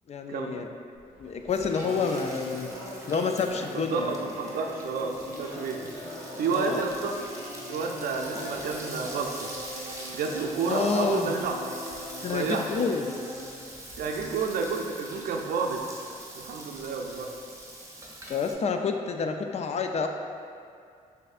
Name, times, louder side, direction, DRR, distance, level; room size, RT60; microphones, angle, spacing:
voice 1, 0.1-0.7 1.2-2.7 3.1-4.1 6.5-6.8 10.7-11.4 12.2-13.2 18.3-20.1, left 5 dB, 45° left, 5 dB, 0.4 m, -28 dB
sound 1, 0.9-14.4, left 1 dB, 65° left, 1.5 m, -41 dB
Frying (food), 1.3-18.5, right 1 dB, 20° right, 0.8 m, -44 dB
voice 2, 3.7-5.9 6.4-7.2 7.7-9.6 10.1-11.5 12.3-12.8 14.0-15.8 16.3-17.3, right 5 dB, 75° right, 2 dB, 0.5 m, -30 dB
6.3 x 2.6 x 2.4 m, 2.4 s
cardioid pair, 65°, 15 cm